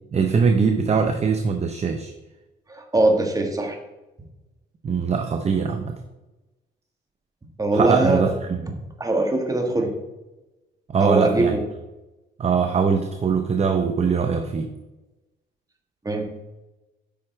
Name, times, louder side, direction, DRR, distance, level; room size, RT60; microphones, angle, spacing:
voice 1, 0.1-2.1 4.8-5.9 7.7-8.7 10.9-11.6 12.4-14.7, right 5 dB, 35° right, 6 dB, 0.7 m, -22 dB
voice 2, 2.7-3.8 7.6-8.2 9.0-9.9 11.0-11.6 16.0-16.3, right 2 dB, 15° right, 3 dB, 1.4 m, -21 dB
8.7 x 5.6 x 3.3 m, 1.0 s
cardioid pair, 90°, 20 cm